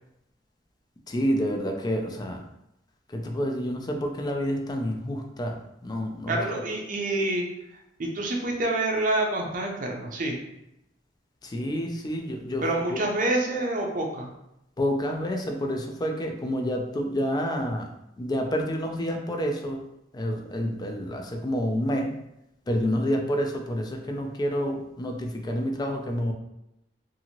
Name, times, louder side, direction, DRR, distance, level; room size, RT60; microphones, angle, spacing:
voice 1, 1.1-2.4 3.1-6.4 11.4-13.0 14.8-17.9 18.2-19.8 20.1-22.2 22.7-26.3, equal, 20° left, 3 dB, 0.3 m, -28 dB
voice 2, 6.3-7.5 8.0-10.4 12.6-14.3, right 2 dB, 45° right, 1 dB, 0.5 m, -27 dB
2.7 x 2.5 x 2.8 m, 0.85 s
head